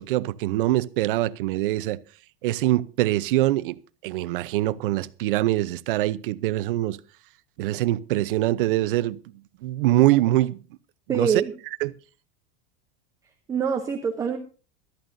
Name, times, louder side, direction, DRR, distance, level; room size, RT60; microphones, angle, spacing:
voice 1, 0.0-2.0 2.4-3.8 4.0-7.0 7.6-9.2 9.6-10.6 11.1-11.3 11.8-11.9, right 15 dB, 60° right, 0.8 m, -23 dB
voice 2, 11.1-11.5 13.5-14.4, right 6 dB, 10° right, 0.8 m, -25 dB
22.5 x 13.0 x 2.7 m
supercardioid pair, 175°, 30 cm